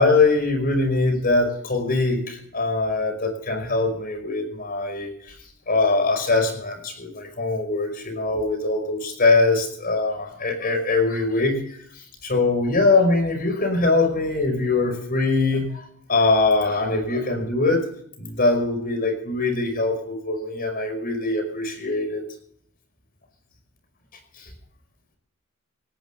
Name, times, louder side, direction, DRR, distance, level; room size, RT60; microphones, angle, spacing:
voice 1, 0.0-5.3 5.7-11.6 12.2-15.8 16.1-17.8 18.2-22.2 24.4-24.5, left 3 dB, 45° left, 6 dB, 5.4 m, -22 dB
18.0 x 18.0 x 3.6 m, 0.66 s
head